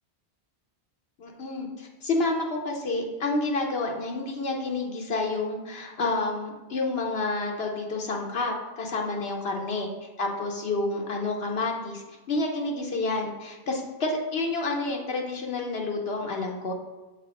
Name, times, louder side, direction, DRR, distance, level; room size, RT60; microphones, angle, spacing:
voice 1, 1.2-9.9 10.2-16.7, left 2 dB, 65° left, 1 dB, 0.9 m, -29 dB
7.3 x 3.5 x 4.8 m, 1.2 s
omnidirectional pair, 1.2 m